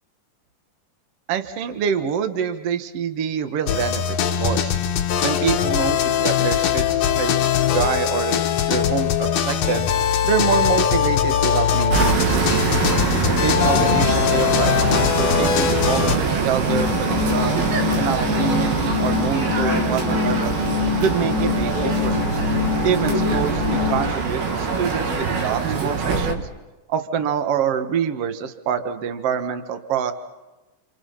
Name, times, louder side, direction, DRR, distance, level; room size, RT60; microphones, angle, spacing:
voice 1, 1.3-4.8 5.2-9.9 10.2-12.7 13.4-14.7 15.1-17.5 18.0-20.6 21.0-22.3 22.8-26.5 26.9-30.1, right 7 dB, 55° right, 8 dB, 2.0 m, -26 dB
sound 1, 3.7-16.2, left 9 dB, 60° left, 1.9 m, -21 dB
sound 2, 11.9-26.3, right 5 dB, 85° right, 3.8 m, -23 dB
sound 3, 16.7-24.1, left 11 dB, 30° left, 2.3 m, -25 dB
29.0 x 27.5 x 5.7 m, 1.1 s
omnidirectional pair, 4.1 m